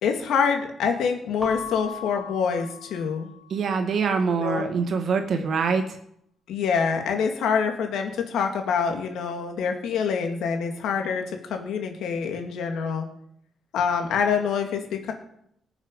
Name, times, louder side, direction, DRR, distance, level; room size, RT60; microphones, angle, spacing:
voice 1, 0.0-3.3 4.3-4.7 6.5-13.1 13.7-15.1, left 6 dB, 90° left, 4 dB, 2.3 m, -26 dB
Keyboard (musical) / Bell, 1.4-3.8, left 5 dB, 5° right, 1.8 m, -38 dB
voice 2, 3.5-5.8, right 5 dB, 60° right, 6 dB, 2.1 m, -24 dB
19.0 x 7.3 x 5.6 m, 0.72 s
cardioid pair, 100°, 0 cm